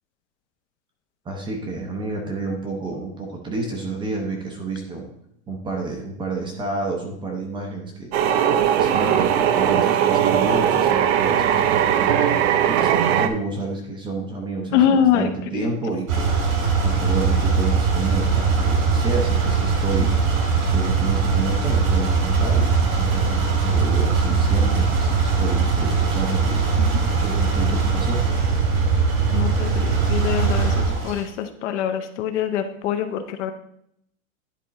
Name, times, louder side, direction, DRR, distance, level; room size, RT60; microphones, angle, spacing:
voice 1, 1.2-5.1 5.5-8.1 8.7-12.1 12.7-16.3 16.8-20.2 20.6-26.7 27.2-28.2, right 3 dB, 10° right, 1 dB, 0.6 m, -29 dB
sound 1, 8.1-13.3, right 9 dB, 50° right, 0.6 m, -19 dB
voice 2, 14.7-15.7 26.8-26.9 29.3-33.5, left 9 dB, 60° left, 8 dB, 0.9 m, -24 dB
sound 2, 16.1-31.2, right 5 dB, 80° right, 2.5 m, -20 dB
10.0 x 3.6 x 4.1 m, 0.72 s
supercardioid pair, 160°, 41 cm